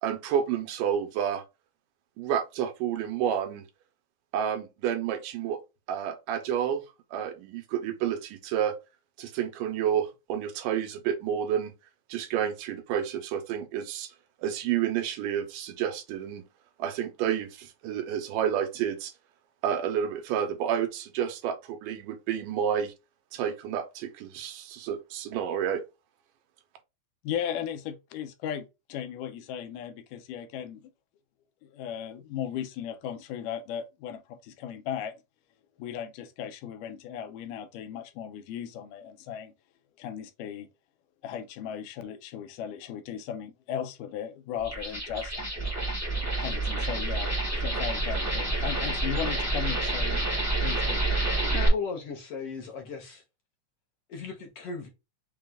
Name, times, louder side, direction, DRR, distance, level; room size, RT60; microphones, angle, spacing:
voice 1, 0.0-1.4 2.2-3.7 4.3-5.6 5.9-6.8 7.1-8.8 9.2-11.7 12.1-14.1 14.4-16.5 16.8-19.1 19.6-22.9 23.3-25.8, right 9 dB, 85° right, 2.4 m, -30 dB
voice 2, 27.2-30.9 31.6-35.2 35.8-39.5 40.0-40.7 41.2-45.3 46.4-47.3 47.6-50.2 50.6-51.0, left 9 dB, 90° left, 2.3 m, -36 dB
sound 1, 44.6-51.7, right 2 dB, 25° left, 0.3 m, -28 dB
voice 3, 51.5-53.2 54.1-54.9, left 5 dB, 65° left, 1.6 m, -36 dB
6.1 x 2.3 x 3.6 m
omnidirectional pair, 3.7 m